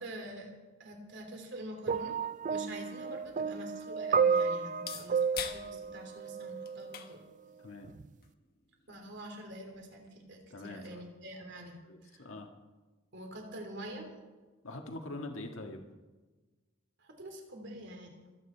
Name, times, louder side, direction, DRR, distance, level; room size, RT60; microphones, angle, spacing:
voice 1, 0.0-7.2 8.9-12.2 13.1-14.1 17.0-18.1, right 1 dB, 60° right, 2 dB, 3.2 m, -46 dB
sound 1, 1.9-7.0 7.9-8.1, right 6 dB, 40° right, 0.4 m, -32 dB
sound 2, 2.9-10.3, left 8 dB, 50° left, 1.3 m, -48 dB
voice 2, 10.5-11.0 11.9-12.5 14.6-15.9, left 2 dB, 75° left, 3 dB, 1.6 m, -43 dB
26.0 x 9.3 x 4.5 m, 1.3 s
head